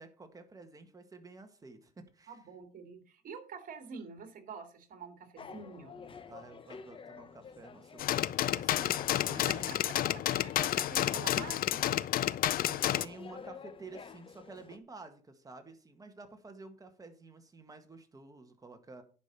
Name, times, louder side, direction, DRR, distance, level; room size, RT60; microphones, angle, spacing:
voice 1, 0.0-2.4 6.3-9.8 12.6-19.0, right 3 dB, 20° right, 6 dB, 1.8 m, -51 dB
voice 2, 2.3-6.1 9.3-9.8 10.1-12.0, right 5 dB, 55° right, 6 dB, 2.4 m, -47 dB
sound 1, 5.4-14.8, left 5 dB, 30° left, 0.9 m, -50 dB
sound 2, 8.0-13.0, left 13 dB, 60° left, 0.5 m, -30 dB
10.5 x 5.2 x 6.8 m, 0.39 s
cardioid pair, 110°, 17 cm